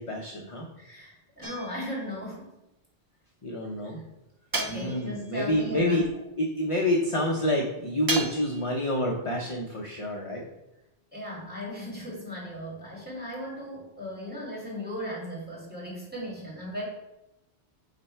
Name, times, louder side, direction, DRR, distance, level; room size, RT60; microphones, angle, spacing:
voice 1, 0.0-0.7 3.4-4.0 4.7-6.0 6.4-10.4, left 1 dB, 35° left, 0 dB, 0.7 m, -28 dB
voice 2, 0.8-2.5 3.8-3.9 4.5-6.1 11.1-16.9, left 1 dB, 10° right, -6 dB, 2.3 m, -37 dB
sound 1, 1.4-2.1 4.5-5.3 8.1-8.7, right 3 dB, 25° right, 0.5 m, -33 dB
9.1 x 3.3 x 4.4 m, 0.92 s
omnidirectional pair, 1.1 m